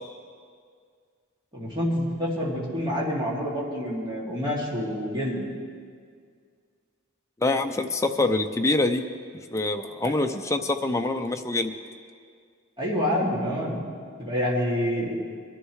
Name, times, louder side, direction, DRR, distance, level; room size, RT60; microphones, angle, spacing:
voice 1, 1.5-5.4 10.0-10.1 12.8-13.8 14.2-15.2, equal, 25° right, -5 dB, 2.5 m, -27 dB
voice 2, 7.4-9.0 9.5-11.7, left 2 dB, 15° left, 5 dB, 0.6 m, -25 dB
22.5 x 11.5 x 3.2 m, 2.1 s
head